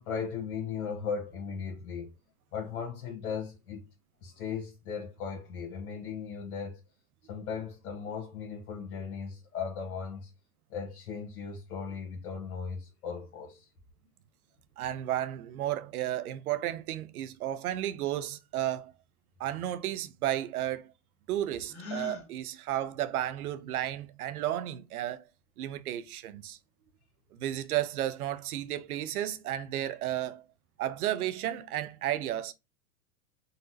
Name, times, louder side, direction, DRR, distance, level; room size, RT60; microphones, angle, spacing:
voice 1, 0.0-2.1 2.5-3.9 4.2-6.8 7.3-10.3 10.7-13.7, left 6 dB, 80° left, 1.0 m, -37 dB
voice 2, 14.8-18.9 19.4-20.9 21.3-25.2 25.6-26.6 27.4-30.4 30.8-32.5, right 12 dB, 85° right, 0.6 m, -33 dB
Gasp, 21.7-22.3, left 4 dB, 30° left, 1.2 m, -39 dB
3.9 x 2.1 x 2.6 m
hypercardioid pair, 105°, 43 cm